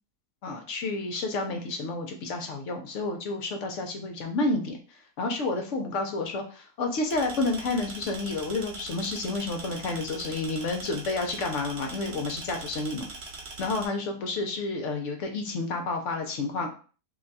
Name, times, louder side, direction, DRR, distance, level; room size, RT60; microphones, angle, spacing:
voice 1, 0.4-4.8 5.2-13.1 13.6-16.7, left 3 dB, 65° left, 4 dB, 0.8 m, -30 dB
sound 1, 7.1-13.9, right 3 dB, 55° right, 0.8 m, -42 dB
2.7 x 2.2 x 3.8 m, 0.37 s
omnidirectional pair, 1.7 m